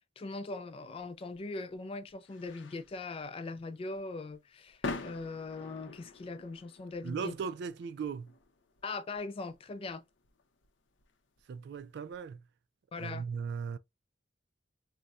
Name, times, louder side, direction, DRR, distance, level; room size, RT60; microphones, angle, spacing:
voice 1, 0.2-7.3 8.8-10.0 12.9-13.3, left 3 dB, 30° left, 0.3 m, -40 dB
sound 1, 0.9-12.2, left 3 dB, 80° left, 0.6 m, -47 dB
voice 2, 7.0-8.3 11.5-12.4 13.0-13.8, right 6 dB, 65° right, 0.3 m, -38 dB
4.0 x 2.1 x 2.3 m
head